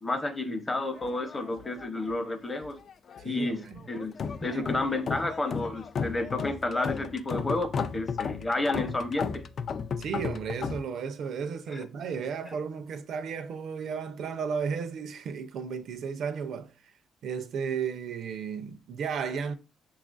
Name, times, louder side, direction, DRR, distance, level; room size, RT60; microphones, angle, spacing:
voice 1, 0.0-2.8 3.2-4.1 4.4-9.4 11.7-11.9 12.5-12.6, left 2 dB, 20° left, 0.7 m, -31 dB
sound 1, 1.0-2.3 2.5-3.3 3.7-10.8, left 6 dB, 55° left, 0.3 m, -34 dB
voice 2, 3.2-3.8 4.5-4.6 10.0-16.7 17.2-19.5, right 6 dB, 70° right, 0.4 m, -34 dB
5.7 x 2.4 x 2.4 m
cardioid pair, 90°, 0 cm